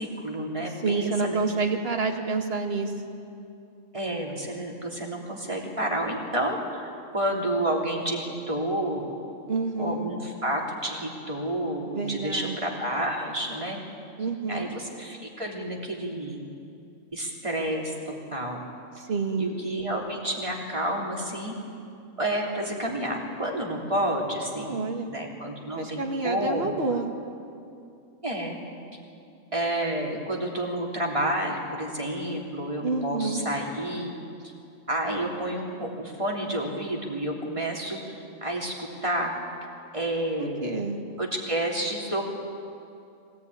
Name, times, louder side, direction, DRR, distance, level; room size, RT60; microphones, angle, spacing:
voice 1, 0.0-1.4 3.9-9.1 9.8-13.8 14.5-16.5 17.1-17.9 18.3-18.6 19.4-21.5 22.2-24.8 25.1-26.8 28.2-28.6 29.5-34.1 34.4-34.5 34.9-38.0 38.4-39.3 39.9-40.8 41.2-42.2, right 1 dB, 20° right, -1 dB, 3.2 m, -30 dB
voice 2, 0.8-2.9 9.5-10.1 11.9-12.6 14.2-14.7 19.0-19.5 24.6-25.1 25.7-27.1 32.8-33.4 40.4-41.0, right 4 dB, 45° right, 3 dB, 2.1 m, -28 dB
23.0 x 18.0 x 9.6 m, 2.6 s
omnidirectional pair, 1.5 m